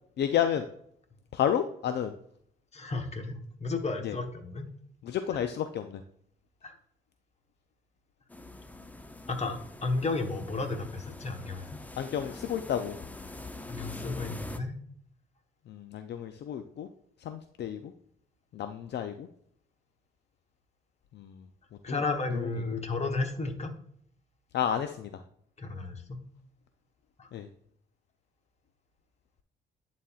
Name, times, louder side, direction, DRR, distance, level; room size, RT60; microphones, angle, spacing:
voice 1, 0.2-0.6 1.3-2.1 4.0-4.2 5.0-6.0 12.0-13.0 15.7-16.9 17.3-17.9 18.5-19.3 21.2-21.3 21.9-22.0 22.3-22.5 24.5-25.1 27.3-27.5, left 9 dB, 60° left, 8 dB, 0.5 m, -31 dB
voice 2, 2.7-4.6 5.3-5.4 6.6-6.7 9.3-11.8 13.7-14.7 21.8-23.7 25.6-26.2 27.2-27.3, left 3 dB, 35° left, 6 dB, 1.1 m, -33 dB
sound 1, 8.3-14.6, left 2 dB, 10° left, 0.5 m, -44 dB
11.0 x 4.2 x 2.4 m, 0.68 s
cardioid pair, 90°, 20 cm